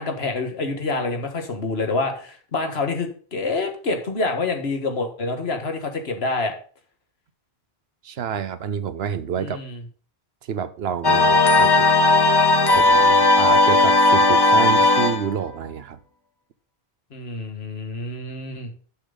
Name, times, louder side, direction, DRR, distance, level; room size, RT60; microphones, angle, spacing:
voice 1, 0.0-6.5 9.4-9.8 17.1-18.7, left 3 dB, 75° left, 1.8 m, -27 dB
voice 2, 8.0-9.6 10.5-11.9 12.7-16.0, right 8 dB, 75° right, 1.0 m, -28 dB
sound 1, 11.0-15.3, left 2 dB, 25° left, 0.8 m, -16 dB
11.5 x 6.9 x 4.0 m
omnidirectional pair, 1.1 m